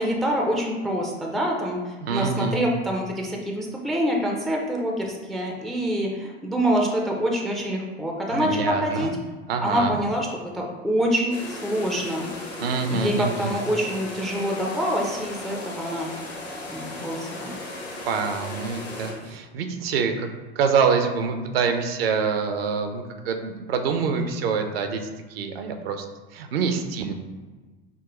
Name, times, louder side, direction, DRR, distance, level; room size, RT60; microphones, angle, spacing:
voice 1, 0.0-9.1 9.6-10.3 10.5-12.3 12.9-16.1 16.7-17.6, equal, ahead, 0 dB, 0.4 m, -26 dB
voice 2, 2.0-2.6 8.3-9.1 9.5-10.0 12.6-13.5 18.1-20.3 20.6-25.0 25.3-26.1 26.3-27.1, right 5 dB, 60° right, 6 dB, 0.6 m, -25 dB
sound 1, 11.3-19.4, left 2 dB, 70° left, 1.1 m, -36 dB
6.0 x 2.2 x 3.0 m, 1.3 s
figure-of-eight pair, 75°, 33 cm